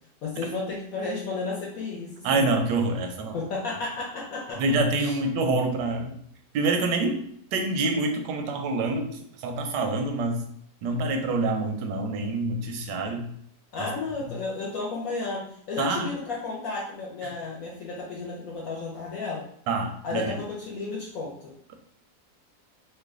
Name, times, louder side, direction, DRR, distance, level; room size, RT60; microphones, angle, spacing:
voice 1, 0.2-2.4 3.3-4.6 5.0-5.2 13.7-19.4 20.0-21.8, left 3 dB, 65° left, -3 dB, 1.0 m, -33 dB
voice 2, 2.2-3.4 4.6-6.2 6.5-7.2 7.5-10.4 10.8-13.3 15.8-16.1 19.7-20.3, right 3 dB, 85° right, 4 dB, 1.2 m, -26 dB
3.1 x 2.2 x 3.5 m, 0.66 s
omnidirectional pair, 1.8 m